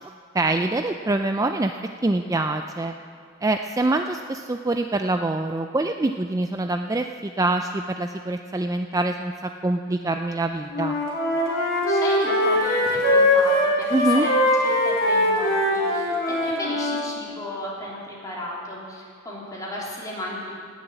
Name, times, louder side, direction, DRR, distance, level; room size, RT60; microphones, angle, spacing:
voice 1, 0.3-1.7 2.0-2.9 3.4-11.0 13.9-14.3, right 2 dB, 15° right, 6 dB, 0.4 m, -25 dB
Wind instrument woodwind instrument, 10.7-17.0, left 1 dB, 55° left, 3.9 m, -21 dB
voice 2, 11.9-14.4 14.6-20.6, left 1 dB, 20° left, -5 dB, 3.5 m, -34 dB
18.5 x 7.3 x 8.1 m, 2.3 s
head